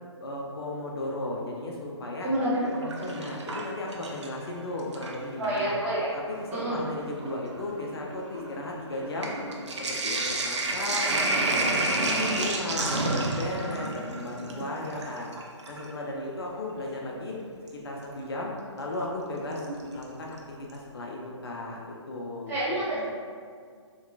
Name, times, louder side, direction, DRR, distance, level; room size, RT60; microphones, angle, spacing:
voice 1, 0.2-2.3 3.0-5.8 6.1-9.3 9.7-15.3 15.7-17.4 17.7-19.6 19.9-20.4 20.7-22.6, left 2 dB, 55° left, -2 dB, 0.4 m, -35 dB
Sink (filling or washing), 2.4-4.5 4.8-5.6 6.4-6.5 6.8-15.9 17.7-17.8 19.6-20.0 20.4-20.5 20.7-20.8, right 2 dB, 70° right, 0.4 m, -30 dB
voice 2, 5.3-6.1 6.5-6.8 11.9-12.4 22.5-23.0, right 1 dB, 15° right, -12 dB, 0.8 m, -29 dB
2.8 x 2.2 x 2.3 m, 2.1 s
figure-of-eight pair, 135°, 15 cm